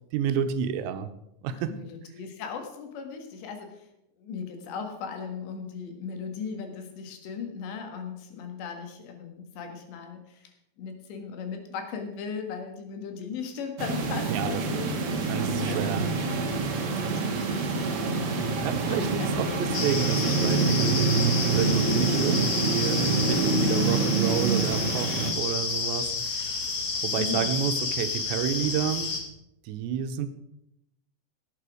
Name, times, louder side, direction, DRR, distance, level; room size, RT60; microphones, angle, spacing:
voice 1, 0.1-1.1 1.4-1.7 14.3-14.9 15.3-16.1 18.6-26.7 27.0-29.1 29.6-30.3, right 8 dB, 80° right, 9 dB, 3.0 m, -30 dB
voice 2, 1.5-3.9 4.2-10.5 10.8-15.8 16.2-16.7 17.0-18.5 18.9-19.4 20.1-20.3 27.1-27.6, left 6 dB, 75° left, 4 dB, 3.9 m, -38 dB
sound 1, 13.8-25.3, right 4 dB, 65° right, 1.3 m, -26 dB
sound 2, 19.7-29.2, left 4 dB, 60° left, 1.2 m, -30 dB
17.0 x 8.4 x 5.0 m, 0.82 s
omnidirectional pair, 5.1 m